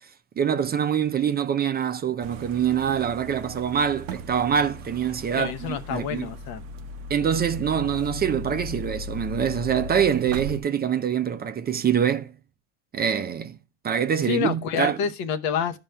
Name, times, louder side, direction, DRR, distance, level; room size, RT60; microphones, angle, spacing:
voice 1, 0.4-5.5 5.9-6.3 7.1-12.3 12.9-13.6 13.8-15.0, right 8 dB, 25° right, 0.5 m, -24 dB
sound 1, 2.2-10.6, equal, 90° right, 0.6 m, -37 dB
voice 2, 5.3-6.6 14.2-15.8, left 7 dB, 65° left, 0.8 m, -28 dB
13.0 x 5.2 x 2.2 m
supercardioid pair, 90°, 38 cm